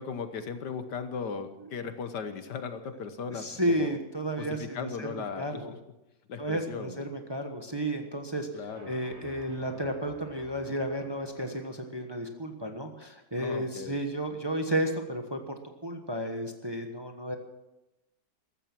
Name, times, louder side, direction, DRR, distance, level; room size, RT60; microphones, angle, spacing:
voice 1, 0.0-4.0 4.4-5.8 6.3-7.0 8.5-8.9 13.4-14.0, left 6 dB, 70° left, 9 dB, 1.8 m, -37 dB
voice 2, 3.3-5.7 6.4-8.5 8.8-15.5 15.8-17.4, right 1 dB, 15° right, 4 dB, 1.2 m, -32 dB
sound 1, 8.7-12.3, right 1 dB, 35° right, 3.8 m, -53 dB
14.5 x 13.5 x 6.1 m, 0.96 s
omnidirectional pair, 1.9 m